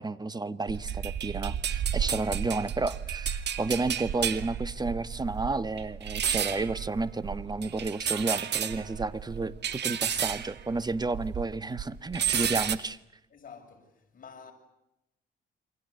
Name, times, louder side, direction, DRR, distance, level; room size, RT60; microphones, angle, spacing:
voice 1, 0.0-13.0, right 3 dB, 20° right, 1.5 m, -31 dB
sound 1, 0.7-11.5 11.8-12.8, right 8 dB, 60° right, 2.2 m, -32 dB
voice 2, 13.3-14.5, left 6 dB, 45° left, 6.8 m, -50 dB
29.0 x 25.0 x 8.3 m
cardioid pair, 90°, 20 cm